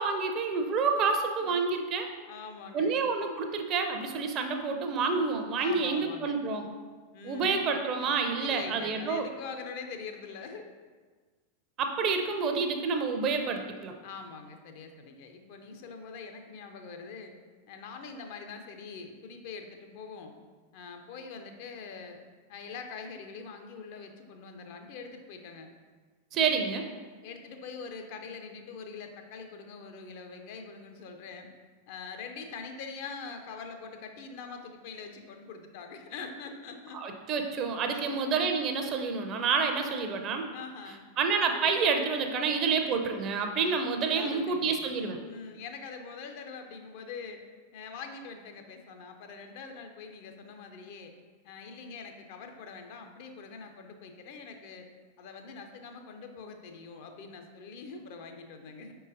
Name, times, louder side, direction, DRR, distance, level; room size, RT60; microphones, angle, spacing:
voice 1, 0.0-2.1 2.7-6.7 7.2-9.3 11.8-13.9 26.3-26.8 37.0-40.5 41.2-45.2, right 5 dB, 35° right, 5 dB, 0.5 m, -28 dB
voice 2, 2.3-3.0 5.6-6.4 7.1-7.6 8.4-10.8 14.0-17.3 17.7-20.3 20.7-22.2 22.5-25.7 27.2-31.5 31.9-37.0 37.9-38.2 40.5-41.0 44.1-44.8 45.2-47.4 47.7-51.1 51.4-54.9 55.2-59.0, left 5 dB, 50° left, 5 dB, 0.4 m, -44 dB
5.1 x 3.8 x 2.6 m, 1.4 s
figure-of-eight pair, 90°, 0 cm